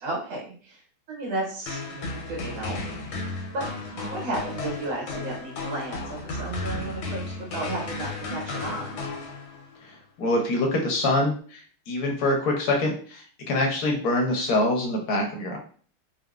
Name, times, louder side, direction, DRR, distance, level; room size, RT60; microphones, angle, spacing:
voice 1, 0.0-0.8 1.1-3.7 3.9-8.9, right 2 dB, 75° right, -2 dB, 1.8 m, -34 dB
sound 1, 1.7-9.8, left 3 dB, 80° left, 1.5 m, -34 dB
voice 2, 9.8-11.6 11.9-15.6, left 2 dB, 65° left, 1 dB, 1.0 m, -25 dB
3.9 x 2.0 x 2.3 m, 0.44 s
omnidirectional pair, 2.2 m